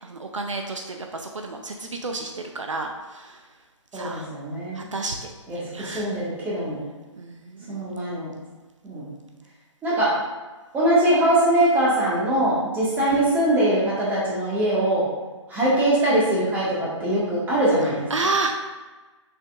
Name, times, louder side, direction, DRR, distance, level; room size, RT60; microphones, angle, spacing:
voice 1, 0.0-3.4 3.9-4.3 4.7-6.1 7.2-7.8 18.1-18.5, right 3 dB, 75° right, 3 dB, 0.6 m, -31 dB
voice 2, 3.9-4.9 5.5-6.8 7.7-8.3 8.8-9.1 9.8-10.1 10.7-15.0 15.5-18.1, right 1 dB, 10° right, -7 dB, 1.6 m, -22 dB
6.2 x 6.1 x 2.4 m, 1.3 s
figure-of-eight pair, 135°, 16 cm